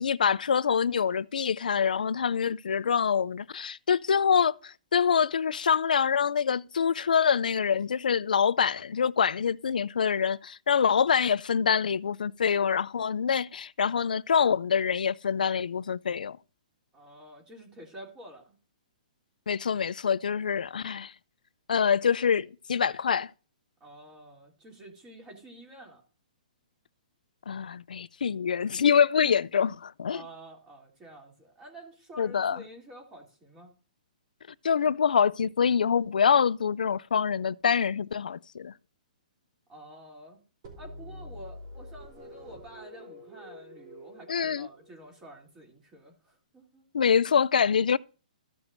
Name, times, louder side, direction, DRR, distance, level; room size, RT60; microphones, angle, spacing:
voice 1, 0.0-16.4 19.5-21.1 21.7-23.3 27.5-30.2 32.2-32.6 34.6-38.7 44.3-44.7 46.9-48.0, left 7 dB, 90° left, 0.3 m, -25 dB
voice 2, 16.9-18.6 23.8-26.0 30.1-33.7 39.7-40.4 40.8-46.8, right 1 dB, 15° right, 2.8 m, -49 dB
sound 1, 40.6-45.4, left 1 dB, 40° right, 2.9 m, -46 dB
14.5 x 6.1 x 2.6 m
hypercardioid pair, 150°, 4 cm